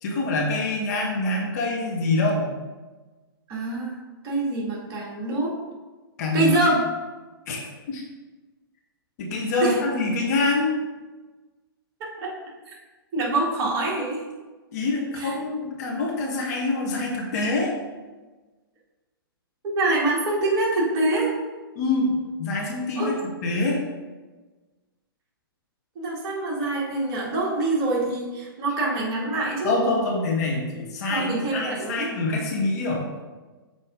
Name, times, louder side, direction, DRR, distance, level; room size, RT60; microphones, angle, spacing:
voice 1, 0.0-2.5 6.2-6.5 7.5-7.6 7.9-8.0 9.2-10.7 14.7-17.8 21.7-23.1 23.4-23.8 29.6-33.1, left 2 dB, 45° left, -1 dB, 1.5 m, -25 dB
voice 2, 3.5-4.0 4.2-5.6 6.3-6.8 9.6-9.8 12.2-12.3 13.1-14.2 15.2-15.3 19.6-21.4 23.0-23.1 26.0-29.8 31.1-32.1, right 2 dB, 30° right, -4 dB, 1.9 m, -25 dB
6.7 x 4.8 x 3.7 m, 1.3 s
figure-of-eight pair, 115°, 13 cm